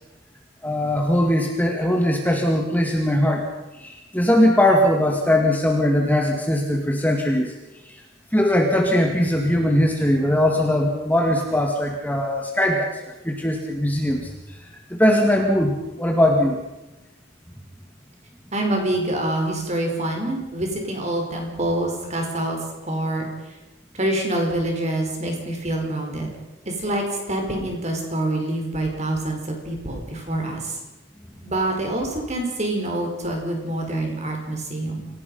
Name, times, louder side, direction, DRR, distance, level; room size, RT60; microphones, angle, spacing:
voice 1, 0.6-3.5 3.8-7.5 7.8-8.0 8.3-14.6 14.9-16.6, left 1 dB, 10° left, 1 dB, 2.0 m, -20 dB
voice 2, 18.5-22.6 22.9-23.5 23.9-26.3 26.6-30.8 31.4-35.1, right 1 dB, 35° right, 2 dB, 5.0 m, -26 dB
27.0 x 17.5 x 5.6 m, 1.0 s
head